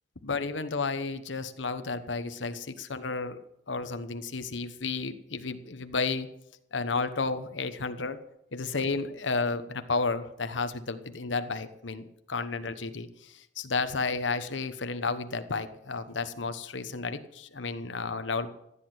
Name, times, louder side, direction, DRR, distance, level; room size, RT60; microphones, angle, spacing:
voice 1, 0.2-3.4 3.7-6.3 6.7-8.2 8.5-18.5, left 4 dB, 75° left, 9 dB, 1.2 m, -32 dB
15.5 x 9.8 x 7.9 m, 0.79 s
head